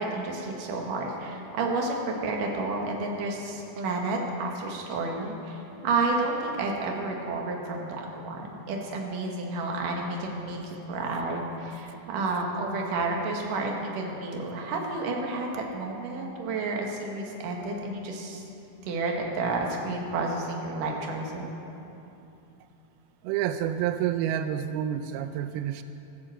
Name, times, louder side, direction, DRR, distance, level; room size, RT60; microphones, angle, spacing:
voice 1, 0.0-18.4 18.8-21.5, right 3 dB, 60° right, 0 dB, 2.9 m, -31 dB
voice 2, 23.2-25.8, right 10 dB, 90° right, 9 dB, 2.2 m, -28 dB
14.0 x 10.5 x 7.9 m, 2.9 s
omnidirectional pair, 5.0 m